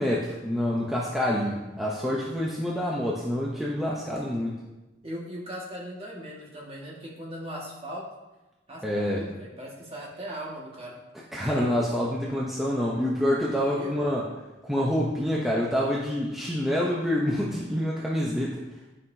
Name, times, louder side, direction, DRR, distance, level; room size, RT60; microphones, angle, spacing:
voice 1, 0.0-4.6 8.8-9.2 11.3-14.3 14.7-18.6, equal, ahead, -5 dB, 0.7 m, -27 dB
voice 2, 5.0-8.1 8.7-11.0 13.8-13.9 15.2-15.4, equal, 30° right, -4 dB, 1.7 m, -39 dB
10.5 x 5.6 x 2.7 m, 1.1 s
head